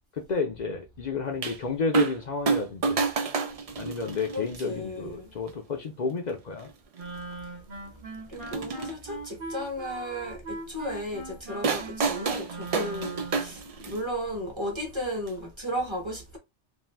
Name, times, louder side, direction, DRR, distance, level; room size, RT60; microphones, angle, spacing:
voice 1, 0.3-3.0 3.8-6.7, left 4 dB, 50° left, 0.6 m, -31 dB
sound 1, 1.4-1.6 1.9-2.2 2.5-4.6 5.5-5.6 6.6-6.7 7.0-7.1 8.3-8.9 11.6-14.0 15.3-15.4, right 4 dB, 70° right, 0.3 m, -28 dB
voice 2, 4.3-5.3 8.3-16.4, equal, 25° right, 1.0 m, -34 dB
Wind instrument woodwind instrument, 6.9-13.6, right 3 dB, 50° right, 1.0 m, -40 dB
2.6 x 2.4 x 3.3 m
omnidirectional pair, 1.2 m